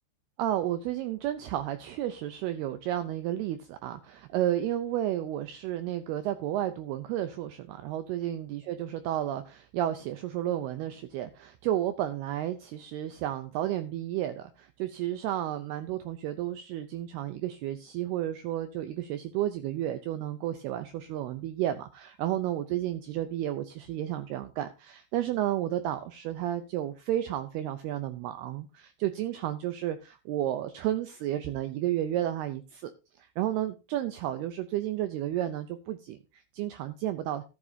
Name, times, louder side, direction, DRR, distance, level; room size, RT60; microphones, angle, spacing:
voice 1, 0.4-32.9 33.2-37.4, right 12 dB, 90° right, 10 dB, 2.2 m, -32 dB
13.5 x 11.0 x 2.7 m, 0.28 s
omnidirectional pair, 5.4 m